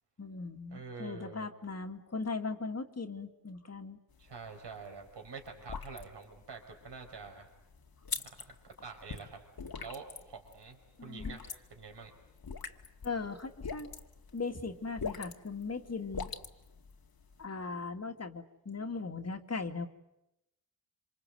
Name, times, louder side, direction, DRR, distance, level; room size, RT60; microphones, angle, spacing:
voice 1, 0.2-4.0 11.0-11.4 13.0-13.9 14.3-16.3 17.4-19.9, left 4 dB, 35° left, 5 dB, 2.4 m, -38 dB
voice 2, 0.7-1.5 4.2-7.5 8.2-9.4 9.8-12.1, right 5 dB, 70° right, 4 dB, 5.0 m, -47 dB
sound 1, 4.1-17.4, left 5 dB, 55° left, 2.1 m, -44 dB
27.0 x 26.0 x 8.0 m, 0.88 s
cardioid pair, 75°, 43 cm